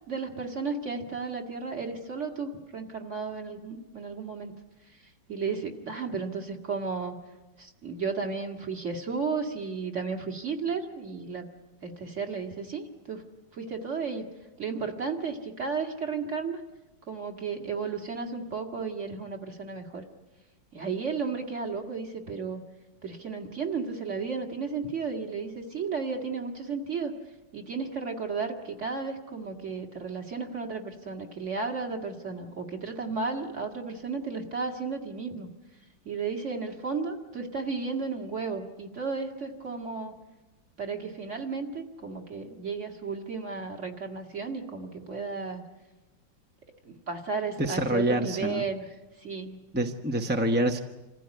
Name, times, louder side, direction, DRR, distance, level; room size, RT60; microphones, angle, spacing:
voice 1, 0.1-4.5 5.3-7.1 7.6-11.5 11.8-13.2 13.5-14.3 14.6-16.6 17.1-20.0 20.7-22.6 23.0-27.1 27.5-35.5 36.1-40.2 40.8-45.6 46.9-48.8 49.2-49.6, right 4 dB, 40° right, 4 dB, 2.2 m, -33 dB
voice 2, 47.6-48.6 49.7-50.8, right 1 dB, 10° right, 4 dB, 0.7 m, -26 dB
27.5 x 15.5 x 9.6 m, 1.1 s
omnidirectional pair, 2.1 m